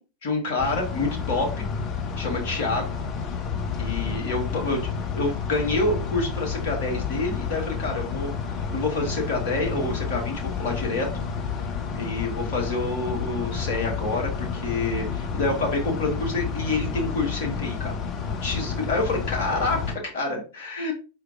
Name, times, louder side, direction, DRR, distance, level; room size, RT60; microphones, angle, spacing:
voice 1, 0.2-1.6 2.2-2.9 3.7-4.8 5.1-8.3 8.7-11.2 11.9-18.0 18.4-20.9, left 2 dB, 50° left, 1 dB, 1.5 m, -27 dB
sound 1, 0.6-20.0, left 6 dB, 35° left, 0.7 m, -30 dB
4.8 x 4.4 x 2.5 m, 0.33 s
figure-of-eight pair, 90°, 0 cm